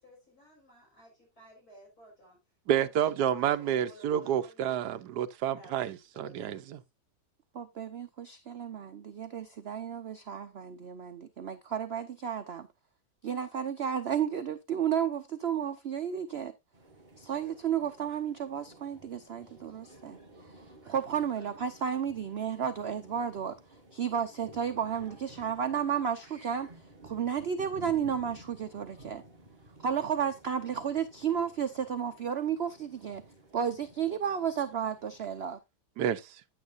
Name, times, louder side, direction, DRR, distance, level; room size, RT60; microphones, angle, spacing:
voice 1, 0.0-2.4 2.7-4.8 5.5-5.9 6.1-6.7, right 1 dB, 60° left, 5.3 m, -55 dB
voice 2, 2.7-6.8 36.0-36.4, right 10 dB, 75° right, 1.3 m, -29 dB
voice 3, 7.5-12.7 13.2-16.5 17.2-20.2 20.5-23.6 23.9-26.7 27.0-29.2 29.8-33.2 33.5-35.6, right 8 dB, 60° right, 0.7 m, -32 dB
sound 1, 16.7-35.5, right 1 dB, 25° right, 2.1 m, -54 dB
9.6 x 9.5 x 2.5 m
omnidirectional pair, 1.8 m